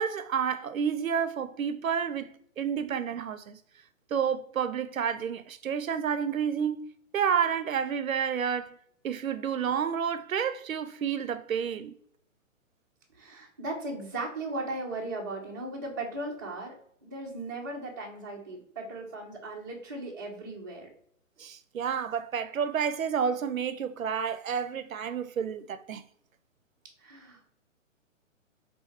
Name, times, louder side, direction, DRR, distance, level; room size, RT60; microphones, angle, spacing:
voice 1, 0.0-2.3 2.6-3.6 4.1-6.8 7.1-8.7 9.0-11.9 21.4-26.0, right 7 dB, 85° right, 0.5 m, -30 dB
voice 2, 13.2-16.8 17.0-20.9 27.0-27.5, right 2 dB, 15° right, 0.4 m, -37 dB
4.2 x 2.7 x 3.4 m
figure-of-eight pair, 130°, 40 cm